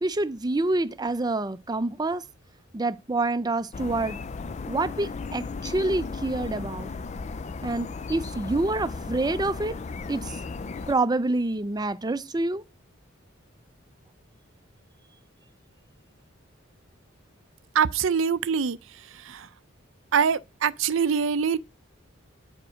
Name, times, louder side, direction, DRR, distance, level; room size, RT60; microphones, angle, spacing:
voice 1, 0.0-2.2 2.7-4.2 4.7-6.9 7.6-9.8 10.1-10.4 10.9-12.6, right 2 dB, 20° right, 0.5 m, -27 dB
sound 1, 3.7-10.9, left 4 dB, 35° left, 0.4 m, -35 dB
voice 2, 17.7-18.8 19.2-19.5 20.1-21.6, right 6 dB, 75° right, 0.5 m, -24 dB
9.5 x 4.9 x 6.3 m
head